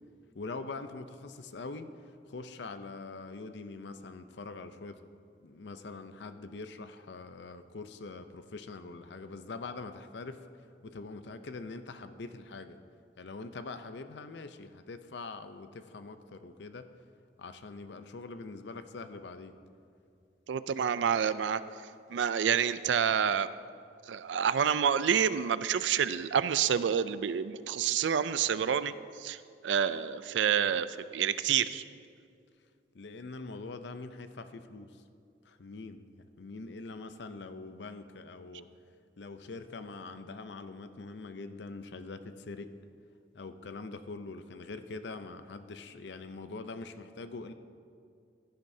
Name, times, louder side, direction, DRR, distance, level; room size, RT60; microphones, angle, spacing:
voice 1, 0.3-1.9 2.3-5.0 5.4-10.5 10.8-12.8 13.2-16.9 17.4-19.5 32.9-35.0 35.4-38.7 39.2-42.7 43.3-47.5, left 3 dB, 70° left, 10 dB, 0.6 m, -43 dB
voice 2, 20.5-21.6 22.1-23.5 24.1-28.9 29.2-30.9 31.1-31.8, right 8 dB, 80° right, 14 dB, 0.4 m, -28 dB
16.5 x 10.5 x 2.7 m, 2.4 s
head